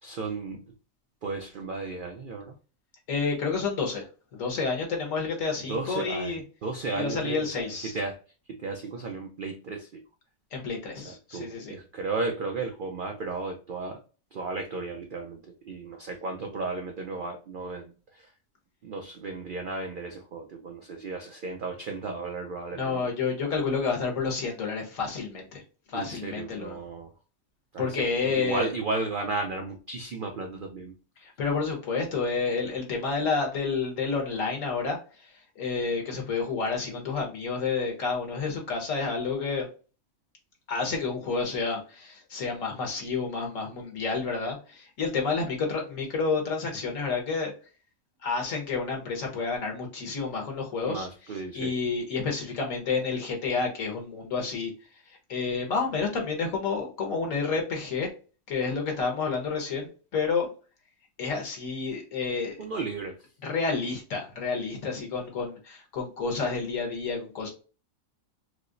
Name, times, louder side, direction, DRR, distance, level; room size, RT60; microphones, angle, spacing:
voice 1, 0.0-0.7 1.2-2.6 5.7-8.2 8.5-10.0 11.0-14.0 14.3-18.3 18.8-23.0 25.9-27.1 27.7-28.0 28.2-30.9 50.9-51.7 62.6-63.2, right 3 dB, 75° right, 4 dB, 0.4 m, -34 dB
voice 2, 3.1-4.0 4.3-6.4 6.9-7.9 10.5-11.7 22.7-25.6 25.9-26.8 27.8-28.7 31.2-39.7 40.7-47.5 48.2-51.1 51.5-54.7 55.1-58.1 58.5-60.5 61.2-62.6 63.4-67.5, left 4 dB, 65° left, 1 dB, 1.4 m, -30 dB
4.7 x 2.0 x 2.5 m, 0.36 s
omnidirectional pair, 1.5 m